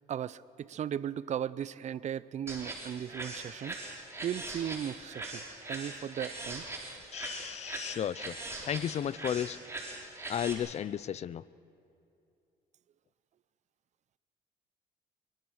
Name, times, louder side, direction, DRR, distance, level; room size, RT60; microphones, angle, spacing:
voice 1, 0.1-5.4 5.7-6.6, right 9 dB, 45° right, 17 dB, 0.6 m, -37 dB
sound 1, 2.5-10.5, right 2 dB, 15° right, 4.7 m, -41 dB
voice 2, 7.1-8.3 8.6-9.6 10.3-11.4, left 9 dB, 40° left, 19 dB, 0.6 m, -34 dB
23.5 x 23.5 x 6.4 m, 2.6 s
cardioid pair, 110°, 17 cm